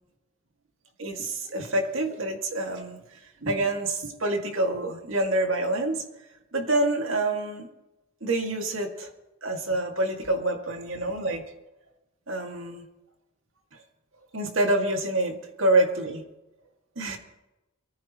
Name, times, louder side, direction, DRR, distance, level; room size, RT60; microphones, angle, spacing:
voice 1, 1.0-3.0 3.4-6.0 6.5-7.7 8.2-9.1 9.4-11.4 12.3-12.9 14.3-16.2 17.0-17.2, right 2 dB, 65° right, 3 dB, 2.2 m, -27 dB
22.5 x 15.0 x 3.1 m, 1.0 s
head